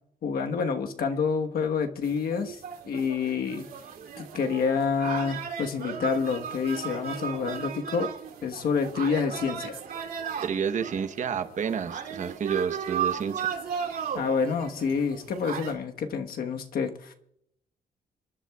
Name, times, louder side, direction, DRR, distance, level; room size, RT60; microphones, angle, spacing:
voice 1, 0.2-2.6 2.8-3.7 4.2-8.1 8.4-9.8 14.1-17.1, left 5 dB, 70° left, 5 dB, 1.3 m, -28 dB
sound 1, 2.0-15.7, right 7 dB, 70° right, 2.8 m, -36 dB
voice 2, 10.4-13.5, right 7 dB, 50° right, 9 dB, 1.0 m, -30 dB
27.5 x 11.0 x 2.4 m, 0.74 s
wide cardioid pair, 170°, 16 cm